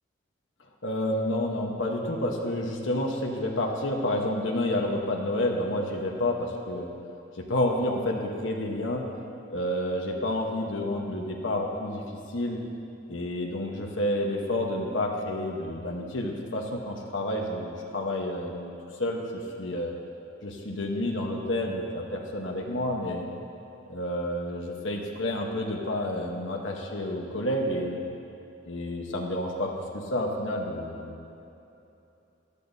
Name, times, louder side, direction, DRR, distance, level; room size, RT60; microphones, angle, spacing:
voice 1, 0.8-6.9 7.3-9.1 9.5-12.6 13.1-18.7 19.0-19.9 20.4-23.3 23.9-28.0 28.6-31.3, left 1 dB, 80° left, 0 dB, 1.2 m, -29 dB
17.0 x 12.5 x 2.8 m, 2.9 s
head